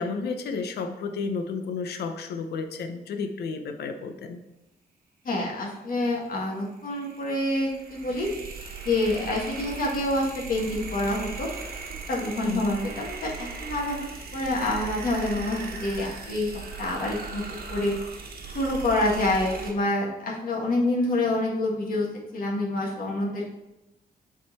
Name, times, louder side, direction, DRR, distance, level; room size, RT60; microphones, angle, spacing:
voice 1, 0.0-4.4 12.4-12.7, left 4 dB, 90° left, 7 dB, 0.7 m, -32 dB
voice 2, 5.2-8.3 8.8-11.5 12.1-14.0 14.3-16.5 16.8-17.4 17.7-17.9 18.5-22.1 22.3-23.4, left 1 dB, 60° left, -3 dB, 1.6 m, -27 dB
sound 1, 6.6-19.7, right 4 dB, 65° right, 1.2 m, -38 dB
7.5 x 3.8 x 4.1 m, 0.95 s
cardioid pair, 110°, 16 cm